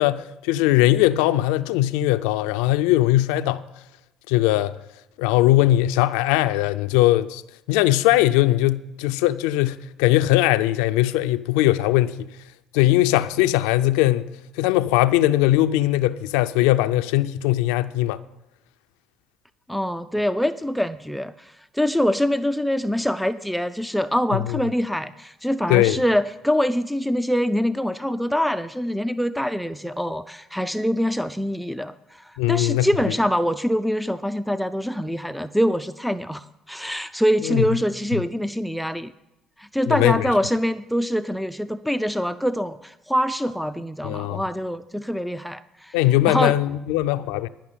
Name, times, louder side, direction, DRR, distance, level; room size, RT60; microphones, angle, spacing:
voice 1, 0.0-3.6 4.3-4.7 5.2-7.4 7.7-12.3 12.7-14.3 14.6-18.2 24.3-24.6 25.7-26.0 32.4-32.9 37.4-37.7 39.9-40.3 44.0-44.4 45.9-47.5, left 15 dB, 80° left, 0.4 m, -20 dB
voice 2, 19.7-39.1 39.6-46.0 46.2-46.6, equal, ahead, 0.5 m, -24 dB
11.5 x 5.9 x 8.9 m
hypercardioid pair, 70°, 0 cm